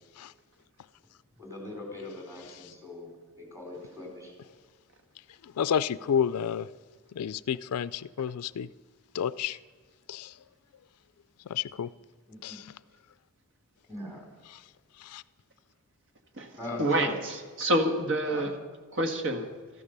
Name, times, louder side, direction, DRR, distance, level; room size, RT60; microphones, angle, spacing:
voice 1, 1.4-4.3 12.3-12.5 13.9-14.2 16.6-17.1 18.3-18.5, left 2 dB, 15° right, 0 dB, 4.2 m, -40 dB
voice 2, 5.4-6.7 7.1-8.7 9.1-9.6 10.1-10.3 11.5-11.9 12.4-12.7 14.5-14.6 15.0-15.2, left 8 dB, 80° left, 16 dB, 0.4 m, -30 dB
voice 3, 16.8-18.5 18.9-19.5, right 1 dB, 60° right, 6 dB, 1.6 m, -27 dB
13.5 x 13.0 x 6.7 m, 1.5 s
head